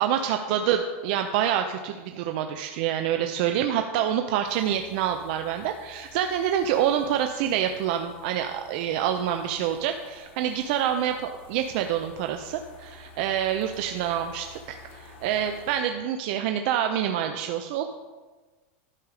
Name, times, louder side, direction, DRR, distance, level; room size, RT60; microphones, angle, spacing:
voice 1, 0.0-17.9, right 10 dB, 50° right, 6 dB, 0.5 m, -27 dB
sound 1, 4.5-15.8, left 3 dB, 70° left, 2.1 m, -51 dB
11.5 x 5.0 x 4.8 m, 1.3 s
supercardioid pair, 165°, 7 cm